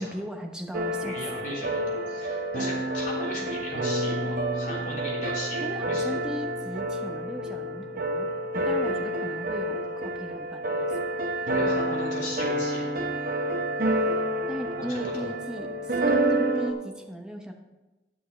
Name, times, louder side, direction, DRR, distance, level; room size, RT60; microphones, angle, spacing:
voice 1, 0.0-1.2 5.6-8.3 8.6-11.0 14.5-17.5, equal, 5° right, 2 dB, 1.0 m, -37 dB
sound 1, 0.7-16.7, right 1 dB, 55° right, 0.9 m, -28 dB
voice 2, 1.0-6.1 11.5-12.8 14.8-15.3, left 1 dB, 50° left, -5 dB, 3.3 m, -37 dB
9.9 x 7.7 x 4.4 m, 1.1 s
head